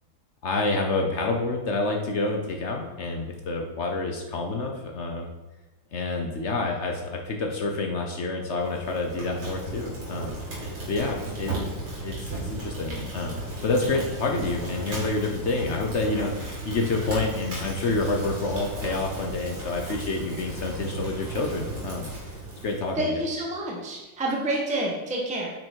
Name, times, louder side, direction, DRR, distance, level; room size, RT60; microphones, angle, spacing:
voice 1, 0.4-5.3 5.9-10.4 10.9-11.6 12.0-22.1 22.6-23.2, left 3 dB, 65° left, 2 dB, 0.6 m, -28 dB
Fire, 8.6-23.0, right 2 dB, 80° right, 4.1 m, -35 dB
voice 2, 22.9-25.5, right 1 dB, 5° right, -2 dB, 1.2 m, -28 dB
9.1 x 6.0 x 4.6 m, 1.1 s
omnidirectional pair, 2.4 m